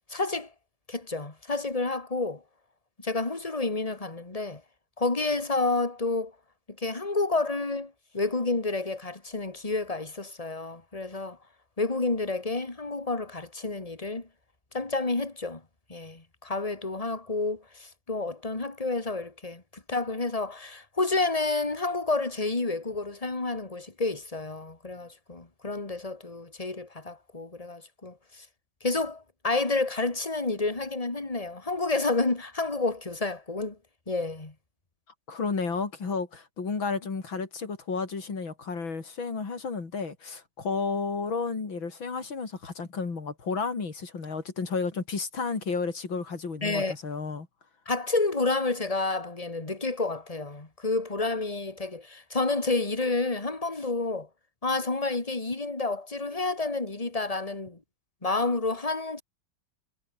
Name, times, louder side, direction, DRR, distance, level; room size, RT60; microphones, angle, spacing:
voice 1, 0.1-0.5 0.9-2.4 3.0-4.6 5.0-6.3 6.8-11.4 11.8-14.3 14.7-15.6 15.9-28.5 28.8-33.8 34.1-34.5 46.6-46.9 47.9-54.3 54.6-57.8 58.2-59.2, left 3 dB, 20° left, 2.6 m, -29 dB
voice 2, 35.3-47.5, left 4 dB, 80° left, 4.3 m, -32 dB
omnidirectional pair, 2.1 m